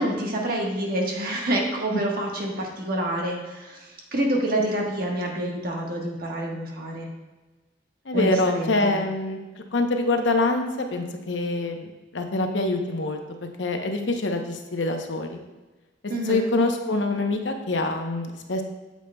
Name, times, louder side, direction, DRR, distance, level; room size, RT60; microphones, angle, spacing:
voice 1, 0.0-7.1 8.1-9.0 16.1-16.4, right 1 dB, 55° right, -1 dB, 1.3 m, -27 dB
voice 2, 8.1-9.4 9.7-13.2 13.6-15.4 16.2-18.6, left 2 dB, 85° left, 5 dB, 0.8 m, -25 dB
8.3 x 7.5 x 2.2 m, 1.2 s
head